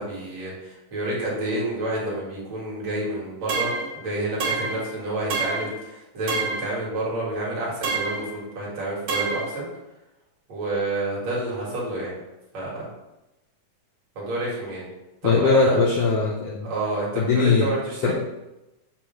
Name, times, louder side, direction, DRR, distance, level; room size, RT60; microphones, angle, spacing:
voice 1, 0.0-9.7 10.5-12.2 12.5-12.9 14.2-14.9 15.2-15.8 16.6-18.1, right 2 dB, 60° right, -6 dB, 3.1 m, -29 dB
sound 1, 3.5-3.9 4.4-4.9 5.3-5.8 6.3-6.7 7.8-8.3 9.1-9.5, right 4 dB, 85° right, 3.1 m, -27 dB
voice 2, 15.2-16.7 17.2-17.7 18.0-18.1, left 4 dB, 75° left, -2 dB, 1.5 m, -20 dB
6.6 x 3.1 x 5.9 m, 0.98 s
omnidirectional pair, 3.6 m